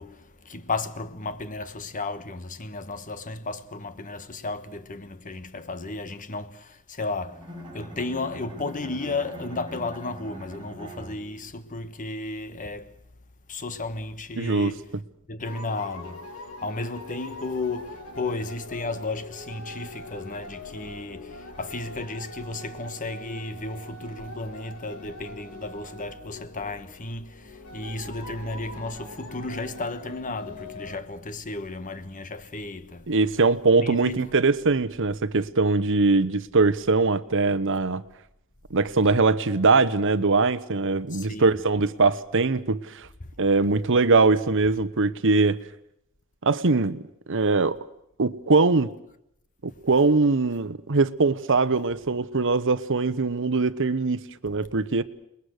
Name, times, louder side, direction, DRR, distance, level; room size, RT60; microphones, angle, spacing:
voice 1, 0.0-7.5 7.7-12.9 13.5-14.9 15.3-33.1 33.8-34.3 41.1-41.5 43.2-43.3, left 3 dB, 35° left, 1.3 m, -34 dB
Bowed string instrument, 7.3-11.6, equal, 20° right, 6.1 m, -42 dB
voice 2, 14.4-14.7 33.1-38.0 38.7-43.1 43.4-45.6 46.4-47.8 48.2-48.9 49.8-55.0, right 3 dB, 60° right, 1.0 m, -22 dB
sound 1, 15.4-31.0, left 2 dB, 85° left, 4.3 m, -42 dB
28.5 x 21.5 x 6.5 m
head